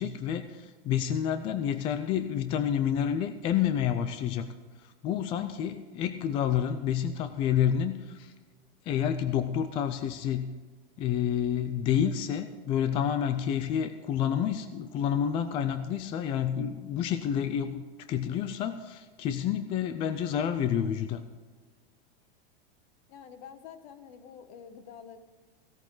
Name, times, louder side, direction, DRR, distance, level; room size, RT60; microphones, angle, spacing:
voice 1, 0.0-4.5 4.8-8.3 8.9-10.5 11.0-21.2, left 9 dB, 20° left, 10 dB, 0.3 m, -29 dB
voice 2, 23.1-25.2, left 7 dB, 50° left, 9 dB, 1.5 m, -47 dB
16.5 x 13.0 x 3.9 m, 1.4 s
supercardioid pair, 160°, 30 cm